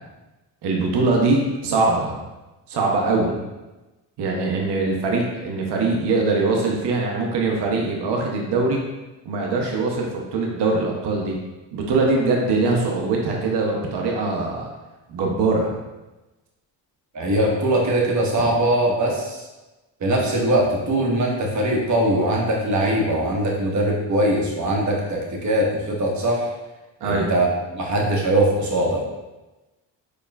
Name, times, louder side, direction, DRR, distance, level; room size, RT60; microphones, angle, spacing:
voice 1, 0.6-2.2 2.7-3.3 4.2-8.8 9.3-11.4 11.7-14.7 15.1-15.8 18.4-18.5 27.0-27.3, right 3 dB, 60° right, -1 dB, 0.7 m, -22 dB
voice 2, 17.1-19.4 20.0-26.5 27.0-27.5 27.7-29.0, right 1 dB, 40° right, -1 dB, 0.9 m, -21 dB
4.3 x 2.3 x 2.2 m, 1.1 s
supercardioid pair, 65°, 46 cm